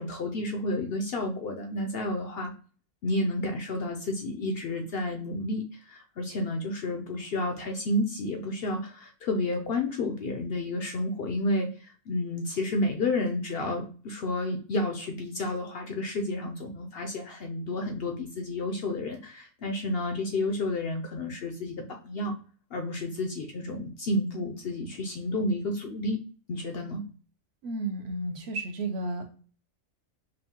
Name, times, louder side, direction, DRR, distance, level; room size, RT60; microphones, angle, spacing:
voice 1, 0.0-2.5 3.0-22.3 22.7-26.2 26.5-27.0, left 1 dB, 60° left, 3 dB, 0.6 m, -31 dB
voice 2, 27.6-29.3, right 2 dB, 60° right, 4 dB, 0.8 m, -32 dB
5.3 x 2.1 x 2.8 m, 0.40 s
omnidirectional pair, 1.4 m